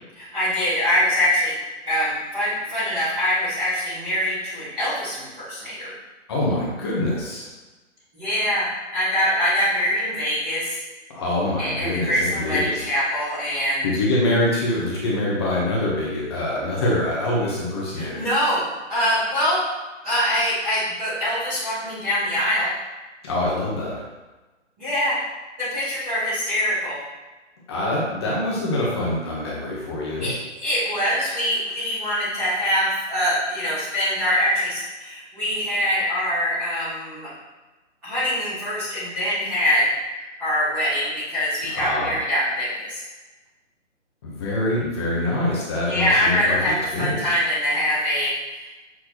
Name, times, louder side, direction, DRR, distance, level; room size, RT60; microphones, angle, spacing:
voice 1, 0.1-1.6 1.8-5.9 8.1-10.7 11.6-13.8 17.9-18.6 18.9-19.6 20.0-22.7 24.8-25.2 25.6-27.0 30.2-30.3 30.6-37.3 38.0-39.9 40.4-43.0 45.9-48.8, equal, 5° right, -20 dB, 0.7 m, -24 dB
voice 2, 6.3-7.5 11.1-12.8 13.8-18.2 23.2-23.9 27.7-30.3 41.7-42.2 44.2-47.3, left 1 dB, 20° left, -5 dB, 1.2 m, -25 dB
7.6 x 4.3 x 3.0 m, 1.2 s
hypercardioid pair, 170°, 37 cm